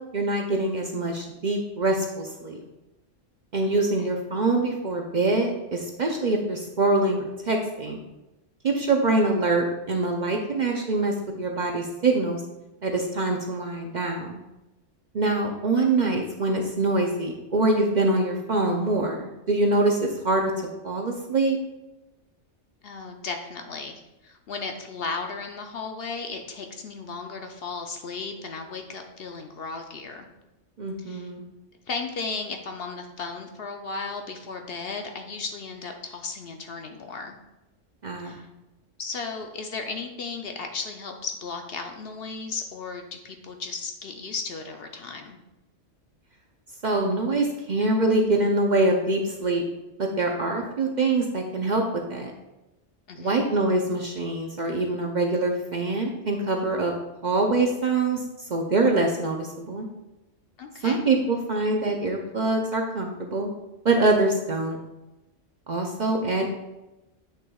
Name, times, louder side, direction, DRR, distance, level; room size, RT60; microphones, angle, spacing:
voice 1, 0.1-2.6 3.5-8.0 8.6-12.4 12.8-14.4 15.1-20.5 20.8-21.6 30.8-31.4 38.0-38.4 46.8-49.6 50.0-52.3 53.2-56.9 57.2-58.2 58.5-59.9 60.8-63.5 63.8-64.8 65.7-66.5, right 2 dB, 45° right, 1 dB, 0.6 m, -24 dB
voice 2, 22.8-30.3 31.0-31.3 31.9-37.4 38.2-38.4 39.0-45.4 53.1-53.5 60.6-61.1, left 4 dB, 60° left, 4 dB, 0.8 m, -35 dB
8.3 x 6.3 x 2.3 m, 0.99 s
omnidirectional pair, 1.3 m